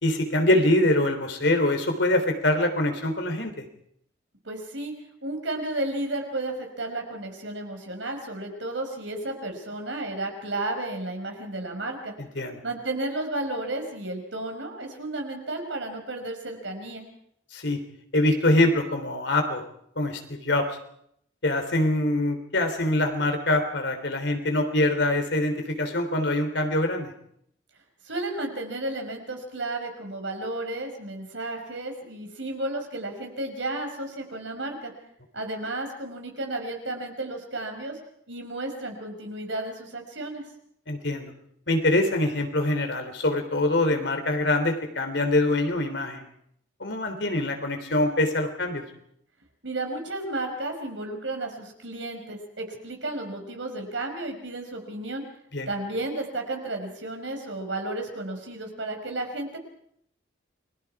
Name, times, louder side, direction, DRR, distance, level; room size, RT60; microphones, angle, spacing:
voice 1, 0.0-3.6 12.2-12.6 17.5-17.8 18.1-19.6 20.0-20.7 21.4-27.1 40.9-41.3 41.7-46.2 46.8-48.8 55.5-55.7, left 1 dB, 65° left, 6 dB, 3.5 m, -24 dB
voice 2, 4.4-4.9 5.2-12.1 12.6-17.1 28.1-34.9 35.3-38.0 38.3-40.4 49.6-55.2 55.7-59.6, right 2 dB, 75° right, 4 dB, 5.3 m, -33 dB
29.5 x 22.0 x 4.8 m, 0.71 s
head